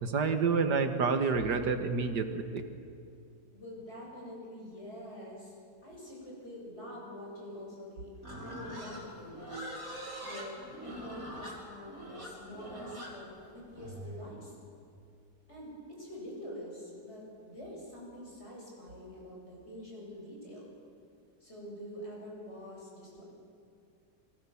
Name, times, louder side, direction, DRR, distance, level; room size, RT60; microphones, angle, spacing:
voice 1, 0.0-2.6, right 5 dB, 85° right, 7 dB, 2.1 m, -29 dB
voice 2, 3.5-5.6 5.8-9.7 10.2-14.5 15.5-20.7 21.4-23.2, equal, 40° left, -3 dB, 8.4 m, -46 dB
Livestock farm animals working animals, 8.2-14.3, equal, 55° right, 4.8 m, -43 dB
29.0 x 23.0 x 7.2 m, 2.4 s
omnidirectional pair, 1.8 m